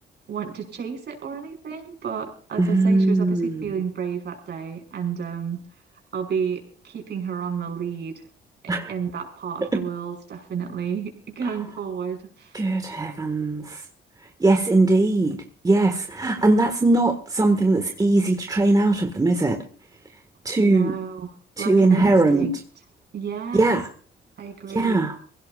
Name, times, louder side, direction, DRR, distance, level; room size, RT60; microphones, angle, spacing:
voice 1, 0.3-5.6 6.1-8.2 8.9-12.6 20.6-21.3 21.6-22.5 23.1-23.7 24.4-25.0, right 7 dB, 60° right, 2 dB, 5.4 m, -31 dB
voice 2, 2.6-3.7 8.7-8.9 9.7-9.8 12.5-13.8 14.4-15.4 15.6-19.6 20.5-21.0 21.6-22.5 23.5-23.9 24.7-25.2, right 2 dB, 20° right, 5 dB, 1.7 m, -20 dB
23.5 x 16.5 x 2.5 m, 0.43 s
cardioid pair, 90°, 20 cm